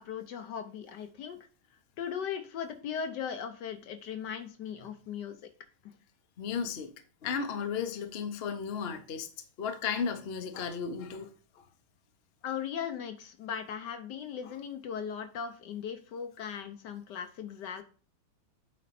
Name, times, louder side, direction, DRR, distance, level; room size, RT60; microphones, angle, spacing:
voice 1, 0.0-1.4 2.0-5.4 12.4-17.8, left 8 dB, 65° left, 8 dB, 1.2 m, -38 dB
voice 2, 6.4-6.9 7.2-9.3 9.6-11.3 11.6-11.7, left 6 dB, 50° left, 6 dB, 0.7 m, -34 dB
8.2 x 4.3 x 4.2 m, 0.39 s
omnidirectional pair, 2.2 m